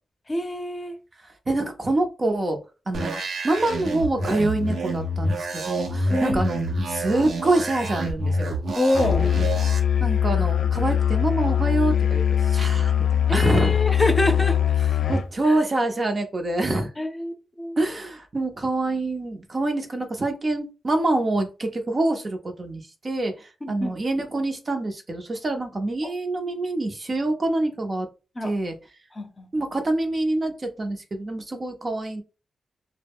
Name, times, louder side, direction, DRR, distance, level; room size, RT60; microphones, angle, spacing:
voice 1, 0.3-0.9 6.1-6.4 8.8-9.2 13.3-14.6 15.4-15.6 17.0-17.8 23.6-23.9 28.4-28.5 29.1-29.5, left 1 dB, 30° left, 0.6 m, -26 dB
voice 2, 1.5-2.6 2.9-6.6 6.9-8.5 10.0-13.8 15.1-16.9 17.8-28.1 28.4-28.8 29.5-32.2, right 2 dB, 40° right, 0.6 m, -26 dB
sound 1, 2.9-9.8, right 1 dB, 80° right, 0.6 m, -28 dB
Musical instrument, 8.9-15.3, left 9 dB, 75° left, 0.3 m, -21 dB
2.1 x 2.0 x 3.5 m
cardioid pair, 70°, 0 cm